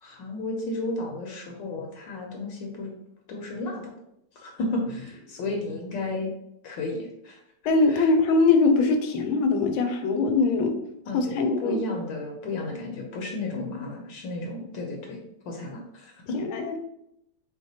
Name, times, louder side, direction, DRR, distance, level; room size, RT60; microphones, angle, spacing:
voice 1, 0.0-3.0 3.3-3.9 4.4-6.3 6.6-7.4 7.9-8.1 11.1-15.2 15.5-16.4, left 2 dB, 70° left, 1 dB, 1.3 m, -33 dB
voice 2, 7.7-10.7 11.1-11.8 16.3-16.8, left 3 dB, 90° left, 6 dB, 1.5 m, -22 dB
4.8 x 2.2 x 4.1 m, 0.79 s
omnidirectional pair, 2.2 m